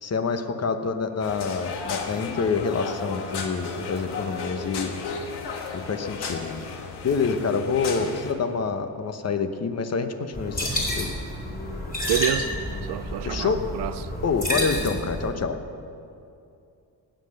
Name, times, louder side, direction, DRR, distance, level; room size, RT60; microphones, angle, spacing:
voice 1, 0.0-4.9 5.9-6.7 7.0-11.1 13.2-13.6 14.2-15.6, left 5 dB, 40° left, 1.0 m, -27 dB
sound 1, 1.2-8.3, left 4 dB, 90° left, 1.5 m, -34 dB
sound 2, 10.3-15.3, left 1 dB, 20° left, 3.5 m, -29 dB
voice 2, 12.1-12.5 12.8-14.0, right 12 dB, 90° right, 0.7 m, -28 dB
18.0 x 7.8 x 6.6 m
cardioid pair, 115°, 39 cm